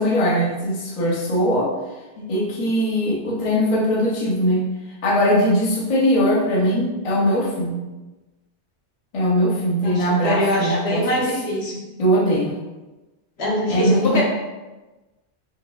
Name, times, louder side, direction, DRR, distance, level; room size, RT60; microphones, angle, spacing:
voice 1, 0.0-1.7 2.2-4.6 5.0-7.8 9.1-11.0 12.0-12.6 13.7-14.2, equal, 35° left, -4 dB, 0.6 m, -20 dB
voice 2, 9.8-11.7 13.4-14.2, left 1 dB, 65° left, -5 dB, 1.2 m, -23 dB
4.7 x 2.7 x 2.3 m, 1.1 s
omnidirectional pair, 1.2 m